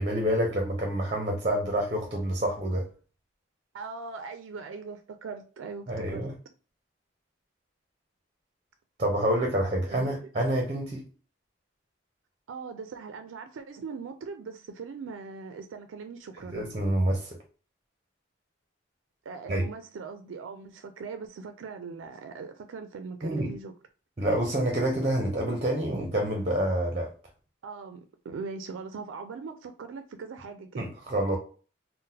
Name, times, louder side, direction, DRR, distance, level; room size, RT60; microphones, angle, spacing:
voice 1, 0.0-2.9 5.9-6.3 9.0-11.0 16.5-17.4 19.5-19.7 23.2-23.5 24.2-27.1 30.8-31.4, right 1 dB, 30° right, 0.6 m, -27 dB
voice 2, 3.7-6.3 9.9-10.3 12.5-16.6 19.3-23.7 27.6-30.9, right 4 dB, 90° right, 0.3 m, -40 dB
3.7 x 2.1 x 2.7 m
head